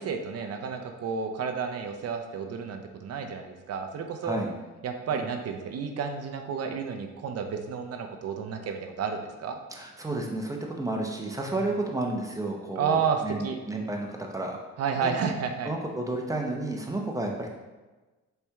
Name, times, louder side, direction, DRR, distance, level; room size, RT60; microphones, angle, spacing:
voice 1, 0.0-4.4 4.8-9.6 12.8-13.6 14.8-15.7, right 6 dB, 55° right, 5 dB, 0.6 m, -31 dB
voice 2, 9.7-14.6 14.9-15.1 15.6-17.5, right 2 dB, 10° right, 1 dB, 0.7 m, -31 dB
4.3 x 3.4 x 3.4 m, 1.2 s
cardioid pair, 90°, 30 cm